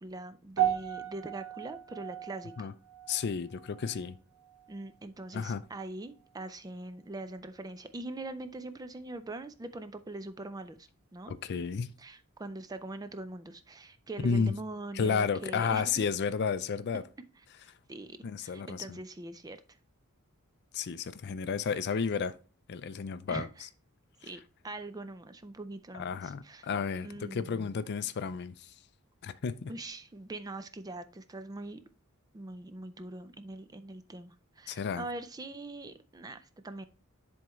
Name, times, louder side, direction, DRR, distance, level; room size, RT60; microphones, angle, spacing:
voice 1, 0.0-2.7 4.7-11.4 12.0-16.1 17.9-19.6 23.3-23.7 24.2-26.7 27.0-27.8 29.7-31.8 32.3-36.9, right 2 dB, 15° right, 0.4 m, -42 dB
sound 1, 0.6-5.0 5.2-5.6 6.3-6.4, right 11 dB, 85° right, 1.5 m, -36 dB
voice 2, 3.1-4.2 5.3-5.6 11.3-11.9 14.2-14.5 14.9-17.0 18.2-19.0 20.7-22.3 22.7-23.5 24.2-24.3 25.9-28.7 29.2-29.7 34.7-35.1, left 5 dB, 50° left, 0.4 m, -32 dB
10.5 x 3.5 x 3.1 m
head